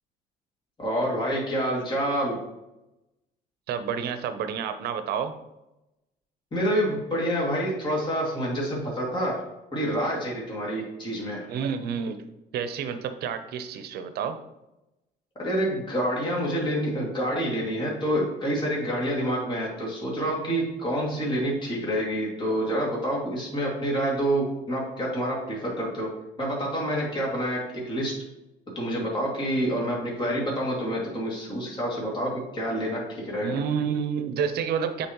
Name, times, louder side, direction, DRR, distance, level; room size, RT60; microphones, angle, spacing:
voice 1, 0.8-2.4 6.5-9.4 9.7-11.5 15.4-26.1 26.4-28.1 28.8-33.6, equal, 30° left, -3 dB, 2.3 m, -27 dB
voice 2, 3.7-5.3 11.5-12.2 12.5-14.4 33.4-35.1, right 7 dB, 70° right, 9 dB, 0.7 m, -29 dB
8.7 x 4.2 x 3.0 m, 0.94 s
cardioid pair, 110°, 17 cm